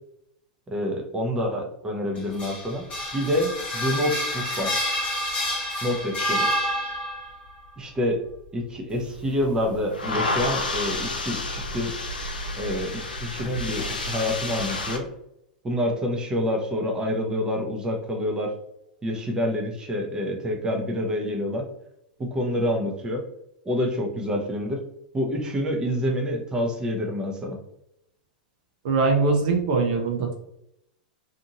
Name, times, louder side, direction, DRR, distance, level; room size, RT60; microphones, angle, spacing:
voice 1, 0.7-2.8 3.1-4.7 5.8-6.5 7.8-8.2 8.5-11.9 12.6-15.0 15.6-18.5 19.0-21.7 22.2-23.2 23.6-24.8 25.1-27.6, left 1 dB, 15° right, 1 dB, 0.7 m, -27 dB
sound 1, 2.2-7.3, equal, 30° left, 1.2 m, -28 dB
sound 2, 8.9-15.0, left 2 dB, 90° left, 0.5 m, -30 dB
voice 2, 28.8-30.3, right 4 dB, 60° right, 2 dB, 0.6 m, -22 dB
2.6 x 2.5 x 2.8 m, 0.79 s
hypercardioid pair, 100°, 5 cm